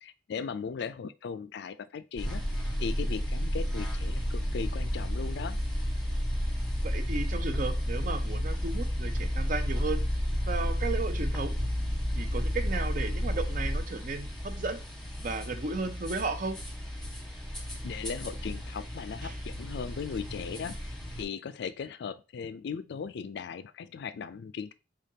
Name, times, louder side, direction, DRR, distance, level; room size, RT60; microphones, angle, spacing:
voice 1, 0.3-2.5 2.8-5.6 17.8-24.7, left 6 dB, 65° left, 0.4 m, -38 dB
sound 1, 2.2-21.2, equal, ahead, 1.2 m, -32 dB
voice 2, 6.8-10.0 10.5-11.5 12.1-14.8 15.2-16.6 19.2-19.4, right 3 dB, 45° right, 0.6 m, -34 dB
5.1 x 3.6 x 2.7 m
head